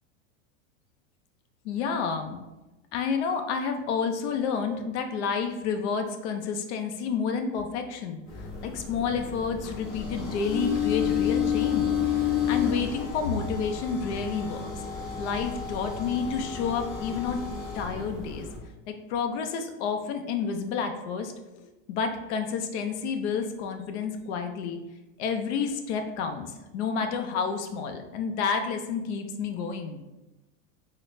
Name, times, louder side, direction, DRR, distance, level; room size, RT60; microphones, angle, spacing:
voice 1, 1.6-2.4 2.9-8.2 8.6-14.7 15.2-17.4 17.7-18.5 18.9-24.8 25.2-30.0, left 6 dB, 60° left, 6 dB, 0.6 m, -30 dB
sound 1, 8.3-18.6, left 8 dB, 35° left, 0.9 m, -30 dB
3.9 x 2.1 x 3.1 m, 1.0 s
supercardioid pair, 145°, 38 cm